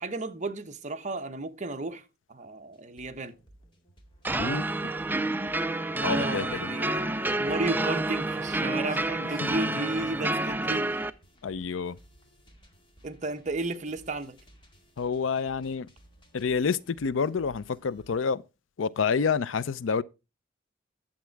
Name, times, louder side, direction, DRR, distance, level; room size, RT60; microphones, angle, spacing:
voice 1, 0.0-2.0 2.3-3.4 6.0-7.0 7.4-10.9 13.0-14.4, right 3 dB, 40° right, 1.0 m, -33 dB
sound 1, 2.7-18.2, right 1 dB, 25° left, 1.9 m, -57 dB
sound 2, 4.2-11.1, right 2 dB, 10° right, 0.4 m, -29 dB
voice 2, 6.0-6.7 9.2-9.6 11.4-12.0 15.0-15.9 16.3-18.4 18.8-20.0, left 5 dB, 85° left, 0.5 m, -28 dB
10.5 x 7.3 x 4.6 m
head